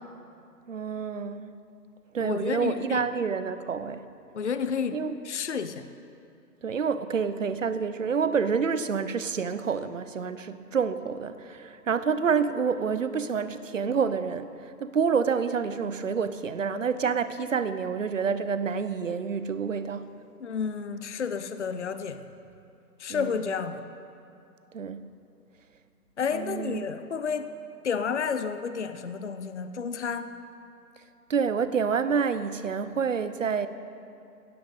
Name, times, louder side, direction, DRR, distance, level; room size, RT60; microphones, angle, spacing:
voice 1, 0.7-1.5 2.1-4.1 4.9-5.2 6.6-20.1 23.1-23.4 24.7-25.1 26.3-26.9 31.3-33.7, right 6 dB, 50° right, 12 dB, 0.8 m, -28 dB
voice 2, 2.2-3.0 4.3-5.0 5.2-5.9 20.4-22.2 23.0-23.8 26.2-27.5 27.8-30.3, left 6 dB, 45° left, 10 dB, 0.7 m, -31 dB
17.0 x 13.0 x 4.9 m, 2.6 s
hypercardioid pair, 170°, 48 cm